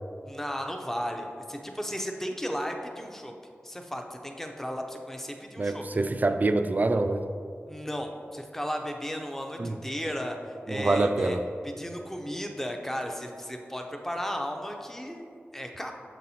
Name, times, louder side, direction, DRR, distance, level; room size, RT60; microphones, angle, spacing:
voice 1, 0.2-3.3 3.6-5.8 7.7-11.4 11.6-15.9, equal, 10° left, 3 dB, 0.6 m, -35 dB
voice 2, 5.6-7.3 9.6-9.8 10.7-11.4, right 2 dB, 40° right, 8 dB, 0.3 m, -25 dB
6.8 x 4.1 x 4.2 m, 2.4 s
wide cardioid pair, 75°, 4 cm